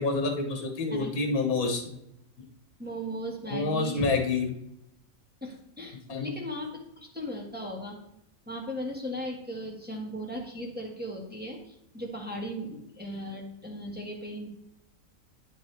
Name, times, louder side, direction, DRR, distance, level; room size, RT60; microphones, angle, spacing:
voice 1, 0.0-1.8 3.5-4.5 6.1-6.3, left 3 dB, 85° left, 4 dB, 1.9 m, -27 dB
voice 2, 2.8-4.2 5.4-8.0 8.5-14.5, equal, 5° right, -1 dB, 1.6 m, -37 dB
9.8 x 7.0 x 3.4 m, 0.79 s
omnidirectional pair, 1.5 m